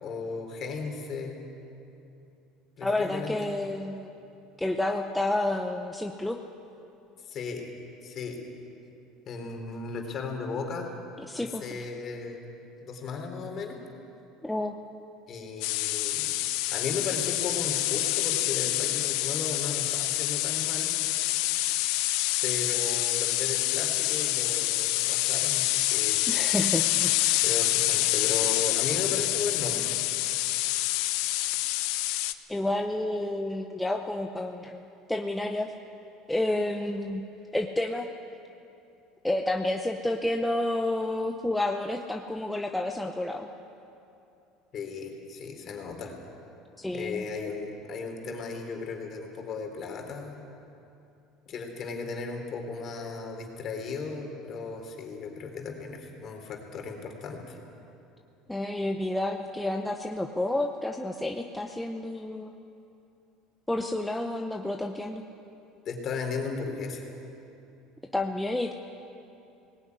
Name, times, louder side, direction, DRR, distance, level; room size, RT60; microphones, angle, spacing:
voice 1, 0.0-1.4 2.8-3.5 7.2-7.7 8.0-8.4 9.3-11.0 11.3-12.4 12.8-13.8 15.3-16.3 16.7-20.9 22.4-26.2 27.4-30.0 44.7-46.1 46.9-50.4 51.5-57.6 65.9-67.1, left 4 dB, 40° left, 3 dB, 3.6 m, -36 dB
voice 2, 2.8-4.1 4.6-6.4 11.3-11.6 14.4-14.7 26.3-27.5 32.5-35.7 36.3-37.3 37.5-38.1 39.2-43.5 46.8-47.2 58.5-62.5 63.7-65.2 68.1-68.7, left 1 dB, 5° left, 3 dB, 0.8 m, -30 dB
sound 1, 15.6-32.3, left 16 dB, 75° left, 0.8 m, -27 dB
19.0 x 18.5 x 9.6 m, 2.8 s
cardioid pair, 145°, 0 cm